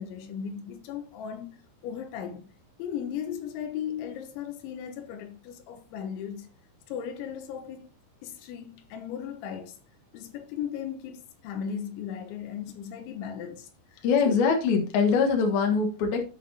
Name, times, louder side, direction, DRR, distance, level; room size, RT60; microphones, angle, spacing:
voice 1, 0.0-1.6 1.8-2.5 2.8-6.5 6.9-7.9 8.2-9.8 10.1-14.4, left 8 dB, 80° left, 3.3 m, -37 dB
voice 2, 14.0-16.2, left 5 dB, 65° left, 3.0 m, -23 dB
15.5 x 5.3 x 2.8 m
omnidirectional pair, 5.3 m